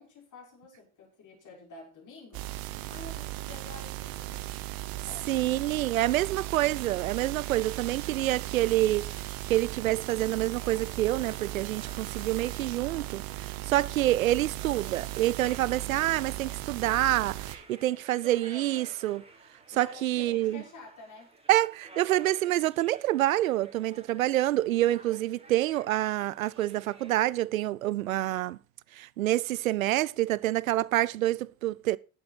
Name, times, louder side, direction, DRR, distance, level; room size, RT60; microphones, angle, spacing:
voice 1, 0.0-2.6 2.9-4.6 5.1-5.3 19.7-21.4, left 3 dB, 45° left, 6.4 m, -49 dB
sound 1, 2.3-17.6, right 17 dB, 60° right, 1.4 m, -37 dB
voice 2, 5.3-19.2 19.8-20.6 21.5-28.6 28.9-32.0, right 15 dB, 85° right, 0.5 m, -27 dB
sound 2, 10.0-27.2, right 3 dB, 15° right, 3.7 m, -53 dB
12.5 x 11.5 x 4.2 m
figure-of-eight pair, 60°, 40 cm